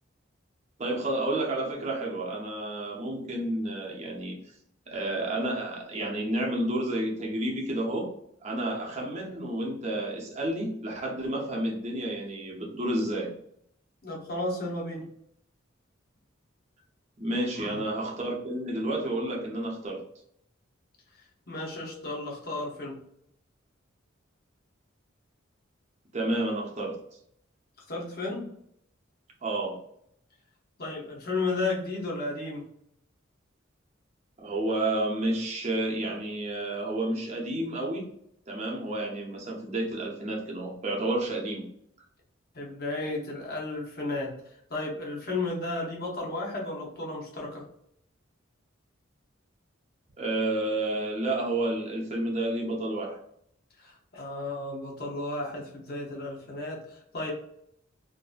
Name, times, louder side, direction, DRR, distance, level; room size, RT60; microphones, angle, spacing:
voice 1, 0.8-4.4 4.9-8.1 8.4-13.3 17.2-20.0 26.1-27.0 29.4-29.8 34.4-38.1 38.5-41.7 50.2-53.2, right 1 dB, 35° right, -1 dB, 0.6 m, -30 dB
voice 2, 14.0-15.1 17.5-17.8 21.1-23.0 27.9-28.5 30.8-32.7 42.5-47.6 53.8-57.3, left 2 dB, 50° left, -2 dB, 0.8 m, -33 dB
2.6 x 2.5 x 2.4 m, 0.70 s
head